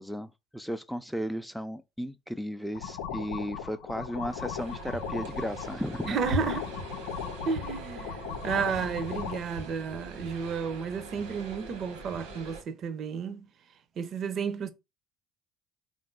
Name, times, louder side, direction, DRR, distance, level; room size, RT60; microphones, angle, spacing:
voice 1, 0.0-6.2, equal, ahead, 0.5 m, -35 dB
sound 1, 2.7-9.4, left 8 dB, 85° left, 0.6 m, -38 dB
sound 2, 4.3-12.6, right 1 dB, 85° right, 1.2 m, -40 dB
voice 2, 6.1-6.7 7.5-13.5 14.0-14.7, right 6 dB, 55° right, 0.7 m, -32 dB
3.8 x 2.6 x 3.7 m
hypercardioid pair, 70°, 0 cm